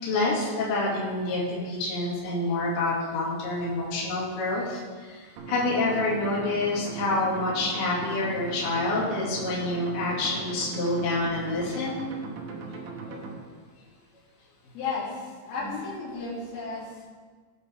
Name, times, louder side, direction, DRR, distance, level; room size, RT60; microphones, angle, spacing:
voice 1, 0.0-12.0 12.7-12.8 13.1-13.2 15.6-15.8, left 2 dB, 50° left, -6 dB, 3.4 m, -28 dB
sound 1, 5.4-13.4, right 4 dB, 70° right, 2.6 m, -39 dB
voice 2, 14.8-16.9, left 4 dB, 85° left, -8 dB, 5.5 m, -34 dB
18.5 x 6.4 x 3.5 m, 1.5 s
omnidirectional pair, 5.6 m